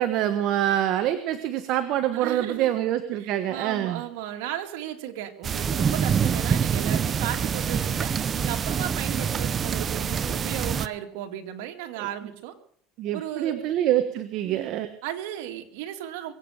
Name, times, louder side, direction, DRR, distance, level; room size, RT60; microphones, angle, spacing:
voice 1, 0.0-4.0 12.0-12.1 13.0-14.9, right 12 dB, 55° right, 9 dB, 1.3 m, -25 dB
voice 2, 2.1-2.7 3.2-12.5 13.1-13.6 14.4-14.7 15.0-16.3, right 11 dB, 85° right, 6 dB, 2.3 m, -35 dB
sound 1, 5.4-10.9, right 7 dB, 30° right, 0.7 m, -25 dB
23.0 x 9.1 x 6.5 m, 0.62 s
cardioid pair, 135°, 0 cm